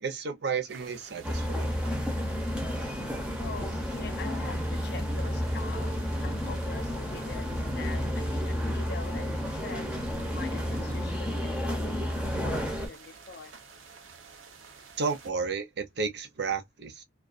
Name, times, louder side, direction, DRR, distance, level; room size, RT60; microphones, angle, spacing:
voice 1, 0.0-1.8 15.0-17.0, right 5 dB, 55° right, 0.6 m, -32 dB
sound 1, 0.7-15.3, right 5 dB, 90° right, 0.7 m, -51 dB
sound 2, 1.2-12.9, equal, 5° right, 0.5 m, -31 dB
voice 2, 3.4-5.9 6.2-9.9 10.3-13.5, left 5 dB, 55° left, 0.4 m, -44 dB
sound 3, 5.0-9.6, left 2 dB, 30° left, 0.7 m, -44 dB
2.3 x 2.2 x 2.3 m
head